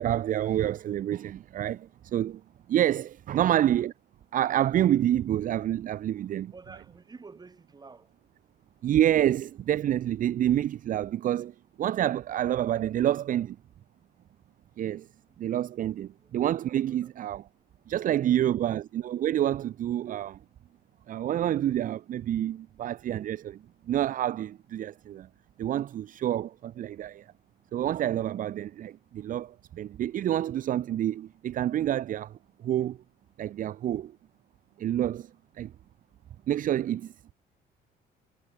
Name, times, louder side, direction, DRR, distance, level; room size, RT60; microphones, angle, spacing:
voice 1, 0.0-2.4 2.7-3.9 4.3-6.5 8.8-13.6 14.8-15.1 15.4-17.4 17.9-20.4 21.1-25.3 25.6-27.3 27.7-33.0 33.4-34.1 34.8-35.3 35.6-35.7 36.5-37.1, right 11 dB, 50° right, 0.8 m, -28 dB
voice 2, 6.5-8.1 16.2-16.4 16.8-17.1 17.9-18.8 25.9-26.0, right 4 dB, 25° right, 7.1 m, -51 dB
cardioid pair, 110°, 17 cm